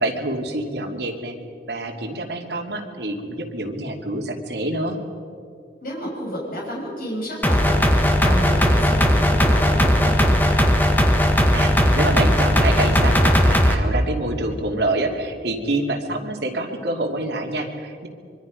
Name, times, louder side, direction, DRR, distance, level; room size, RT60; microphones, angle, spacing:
voice 1, 0.0-1.3 1.7-5.0 11.5-18.1, right 2 dB, 75° right, 2 dB, 2.6 m, -26 dB
voice 2, 5.8-10.6, equal, 55° left, -3 dB, 6.4 m, -31 dB
sound 1, 7.4-13.8, equal, 10° left, 1.5 m, -17 dB
25.0 x 24.0 x 5.2 m, 2.3 s
head